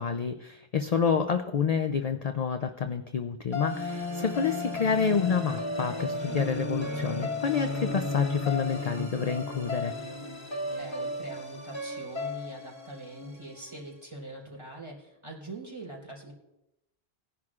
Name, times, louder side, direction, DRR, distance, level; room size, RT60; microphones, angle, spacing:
voice 1, 0.0-9.9, left 6 dB, 45° left, 7 dB, 0.6 m, -28 dB
sound 1, 3.5-13.8, left 2 dB, 25° left, 1.6 m, -34 dB
voice 2, 10.8-16.3, right 2 dB, 30° right, -3 dB, 3.5 m, -43 dB
19.0 x 10.5 x 2.4 m, 0.91 s
omnidirectional pair, 1.0 m